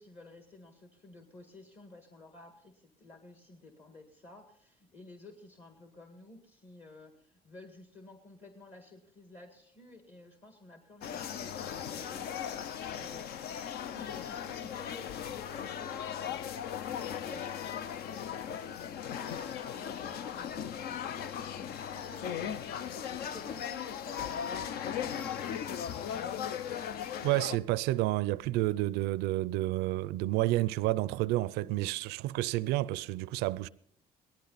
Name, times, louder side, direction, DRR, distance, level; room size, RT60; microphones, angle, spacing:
voice 1, 0.0-12.5 12.9-13.3 13.9-19.4 19.7-22.8 23.3-25.8 26.1-26.9, left 2 dB, 40° left, 1.8 m, -53 dB
sound 1, 11.0-27.6, left 9 dB, 75° left, 0.6 m, -38 dB
voice 2, 27.2-33.7, right 17 dB, 85° right, 0.4 m, -30 dB
18.0 x 12.0 x 4.0 m
supercardioid pair, 85°, 16 cm